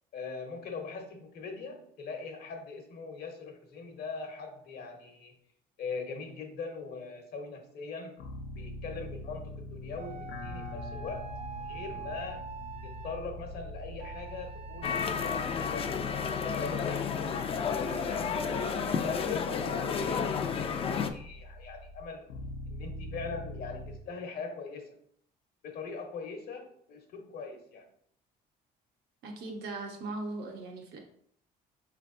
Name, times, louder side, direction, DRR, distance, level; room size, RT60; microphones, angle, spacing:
voice 1, 0.1-5.4 5.8-8.2 8.6-11.3 11.6-12.4 12.8-16.2 16.5-17.2 17.7-22.3 22.7-25.0 25.6-27.9, left 4 dB, 70° left, 4 dB, 1.0 m, -41 dB
sound 1, 8.2-24.0, left 1 dB, 90° left, 0.6 m, -43 dB
sound 2, 10.0-13.2 14.0-15.5, right 7 dB, 40° right, 0.5 m, -45 dB
sound 3, 14.8-21.1, left 6 dB, 35° left, 0.4 m, -31 dB
voice 2, 29.2-31.0, right 2 dB, 75° right, 2 dB, 1.0 m, -39 dB
4.7 x 3.3 x 2.6 m, 0.65 s
cardioid pair, 110°, 17 cm